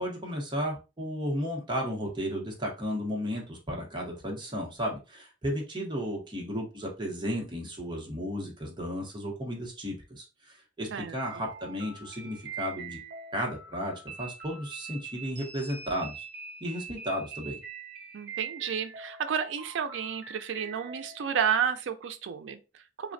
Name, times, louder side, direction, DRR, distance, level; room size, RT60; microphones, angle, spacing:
voice 1, 0.0-13.0 13.3-16.3 16.6-17.6, equal, 25° right, 0.8 m, -34 dB
voice 2, 10.9-11.5 18.1-23.1, right 7 dB, 90° right, 0.4 m, -31 dB
sound 1, 11.2-21.4, right 5 dB, 55° right, 0.8 m, -43 dB
3.3 x 2.1 x 2.5 m
head